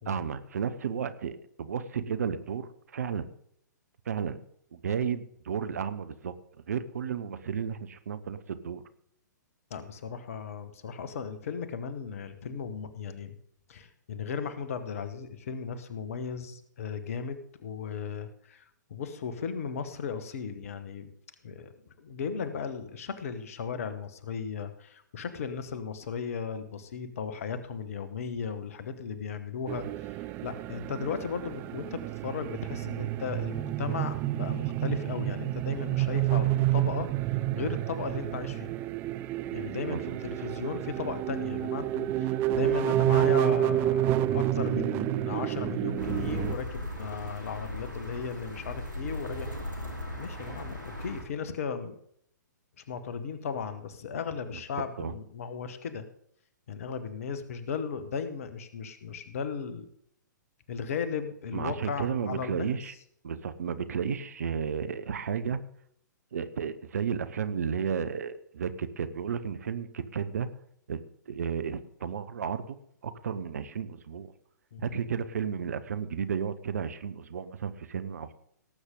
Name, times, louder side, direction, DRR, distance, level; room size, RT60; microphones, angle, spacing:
voice 1, 0.1-3.3 4.1-4.4 4.7-6.3 6.7-8.8 39.9-40.2 55.0-55.1 61.5-62.9 63.2-65.6 66.3-70.5 70.9-72.8 73.0-74.3 74.8-78.3, right 7 dB, 55° right, 13 dB, 0.9 m, -33 dB
voice 2, 9.7-13.3 13.7-18.6 18.9-21.1 21.4-30.2 30.4-37.1 37.5-38.7 39.5-49.5 50.1-52.0 52.9-56.1 56.7-59.9 60.7-62.8 74.7-74.9, left 6 dB, 50° left, 11 dB, 1.3 m, -36 dB
sound 1, 29.7-46.5, right 13 dB, 20° right, 0.4 m, -29 dB
sound 2, 46.0-51.2, left 1 dB, 85° right, 3.0 m, -37 dB
18.0 x 8.1 x 3.8 m, 0.68 s
figure-of-eight pair, 120°, 10 cm